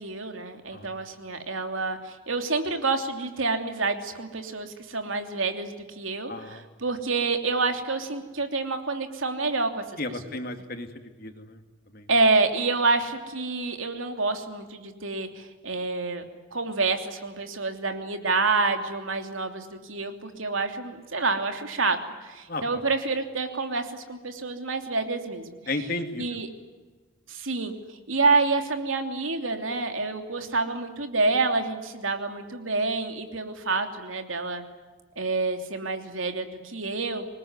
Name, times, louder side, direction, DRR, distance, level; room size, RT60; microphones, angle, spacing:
voice 1, 0.0-9.8 10.3-10.4 12.1-16.2 16.5-25.6 26.2-26.5 27.3-27.7 28.1-34.6 35.2-37.3, right 3 dB, 90° right, 6 dB, 3.1 m, -28 dB
voice 2, 6.3-6.6 10.0-11.6 11.9-12.1 22.5-22.8 25.7-26.4, left 2 dB, 50° left, 6 dB, 2.5 m, -34 dB
26.0 x 20.5 x 9.8 m, 1.3 s
head